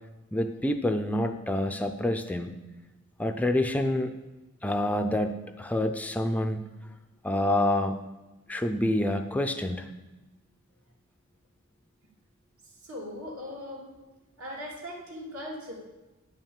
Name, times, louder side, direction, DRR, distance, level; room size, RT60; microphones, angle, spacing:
voice 1, 0.3-2.6 3.2-4.1 4.6-6.7 7.2-8.0 8.5-9.9, left 1 dB, 5° left, 7 dB, 0.4 m, -27 dB
voice 2, 12.6-13.9 14.4-15.7, left 1 dB, 70° right, -2 dB, 2.8 m, -39 dB
9.8 x 5.7 x 7.1 m, 1.1 s
head